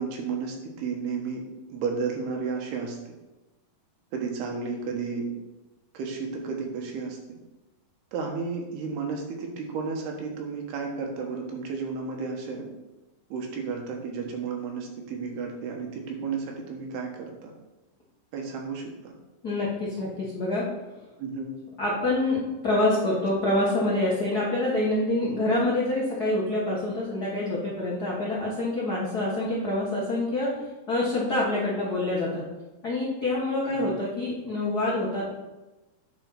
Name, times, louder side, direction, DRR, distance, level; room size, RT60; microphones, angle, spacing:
voice 1, 0.0-1.4 1.7-3.0 4.1-5.3 5.9-7.2 8.1-12.7 13.3-17.5 18.3-19.1 21.2-21.5 33.6-33.9, right 5 dB, 80° right, 1 dB, 3.3 m, -32 dB
voice 2, 19.4-20.6 20.9-21.0 21.8-30.5 30.9-32.4 32.8-35.2, left 2 dB, 70° left, -6 dB, 0.9 m, -26 dB
9.6 x 4.5 x 5.7 m, 1.1 s
omnidirectional pair, 4.6 m